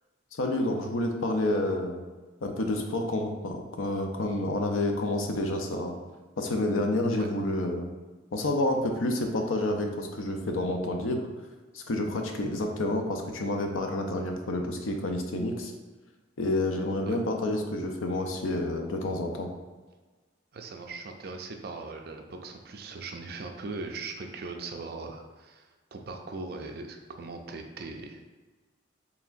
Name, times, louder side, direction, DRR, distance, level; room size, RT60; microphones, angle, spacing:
voice 1, 0.3-2.0 2.4-5.9 6.4-7.9 8.3-11.2 11.7-15.7 16.4-19.5, left 1 dB, 85° left, 4 dB, 0.6 m, -29 dB
voice 2, 20.5-28.2, right 3 dB, 50° right, 4 dB, 0.4 m, -40 dB
4.5 x 3.3 x 2.5 m, 1.3 s
head